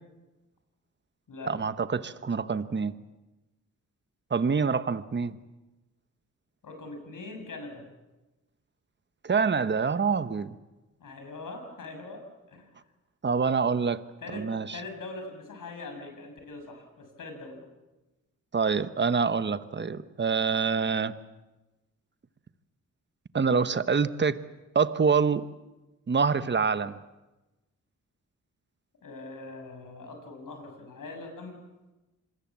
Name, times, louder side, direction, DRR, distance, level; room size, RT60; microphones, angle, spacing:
voice 1, 1.4-2.9 4.3-5.4 9.2-10.6 13.2-14.0 14.3-14.8 18.5-21.1 23.3-24.4 24.7-25.4 26.1-27.0, right 5 dB, 35° right, 12 dB, 1.1 m, -26 dB
voice 2, 6.6-7.8 11.0-12.2 12.5-12.7 14.2-17.6 29.0-31.6, left 3 dB, 70° left, 5 dB, 7.1 m, -42 dB
26.5 x 21.0 x 7.5 m, 1.1 s
cardioid pair, 75°, 33 cm